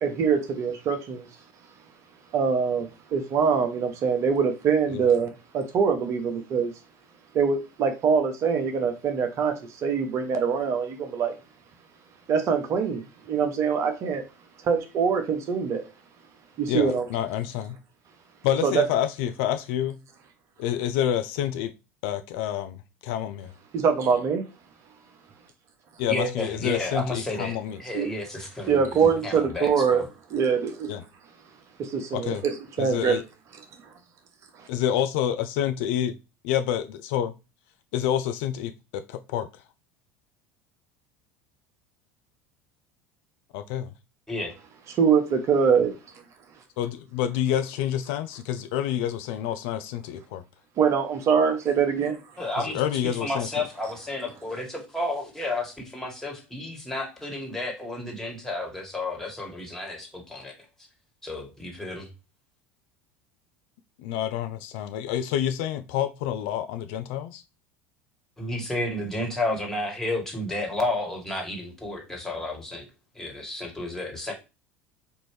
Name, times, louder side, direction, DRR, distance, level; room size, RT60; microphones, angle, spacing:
voice 1, 0.0-1.3 2.3-6.7 7.3-11.3 12.3-14.2 14.6-15.8 16.6-17.0 18.6-18.9 23.7-24.4 27.9-28.1 28.7-30.0 30.3-30.9 31.8-33.2 34.6-34.7 44.9-45.9 50.8-52.2, right 6 dB, 45° right, 0.7 m, -24 dB
voice 2, 16.7-17.8 18.4-20.0 20.6-21.7 22.0-22.8 23.0-23.5 26.0-27.8 30.9-31.0 32.1-32.4 32.8-33.2 34.7-36.2 36.4-37.3 37.9-39.5 43.5-43.9 46.8-50.4 52.6-53.7 64.0-67.4, left 10 dB, 60° left, 0.4 m, -28 dB
voice 3, 26.1-30.1 44.3-44.5 52.4-52.8 53.2-60.5 61.2-62.1 68.4-72.9 73.2-74.3, left 1 dB, 5° left, 1.7 m, -31 dB
4.4 x 2.6 x 3.2 m
figure-of-eight pair, 75°, 7 cm